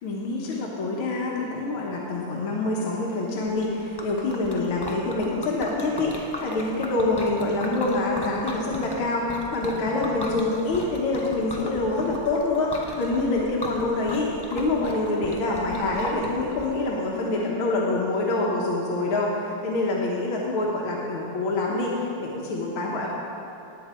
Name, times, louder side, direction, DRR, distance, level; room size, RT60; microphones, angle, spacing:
voice 1, 0.0-23.1, left 2 dB, 80° left, -4 dB, 2.1 m, -26 dB
Liquid, 3.5-16.6, left 1 dB, 35° left, 0.4 m, -38 dB
19.0 x 8.1 x 4.4 m, 3.0 s
omnidirectional pair, 2.3 m